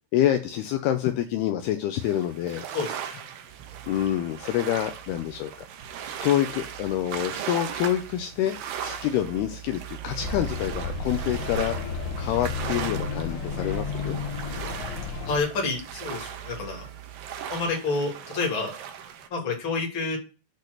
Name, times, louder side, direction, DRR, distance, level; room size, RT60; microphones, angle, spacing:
voice 1, 0.1-2.7 3.9-5.5 6.2-11.7 12.2-14.2, left 11 dB, 85° left, 2.3 m, -27 dB
sound 1, 2.0-19.3, right 8 dB, 80° right, 2.0 m, -38 dB
sound 2, 3.5-17.7, right 12 dB, 65° right, 3.0 m, -44 dB
sound 3, 10.2-15.4, left 5 dB, 60° left, 3.4 m, -32 dB
voice 2, 15.2-16.9 17.5-18.7 19.3-20.2, left 3 dB, 35° left, 2.4 m, -28 dB
8.7 x 4.1 x 6.5 m
omnidirectional pair, 5.6 m